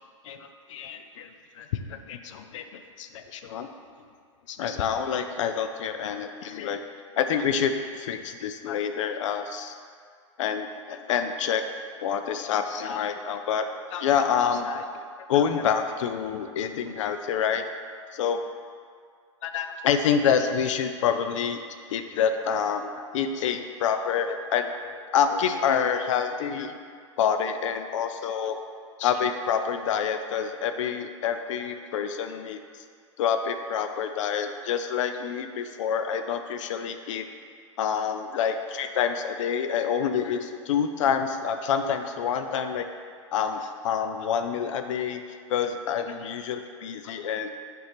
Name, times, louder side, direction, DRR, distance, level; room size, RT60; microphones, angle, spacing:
voice 1, 0.2-3.7 4.5-6.8 7.2-9.7 10.4-10.7 11.1-11.6 12.0-13.6 13.9-15.0 15.3-17.7 18.1-18.4 19.4-21.6 21.9-26.7 27.2-28.6 29.0-32.6 33.2-37.3 37.8-42.9 43.3-45.2 45.5-47.5, left 7 dB, 70° left, 7 dB, 0.4 m, -27 dB
6.3 x 4.4 x 3.5 m, 2.1 s
hypercardioid pair, 105°, 16 cm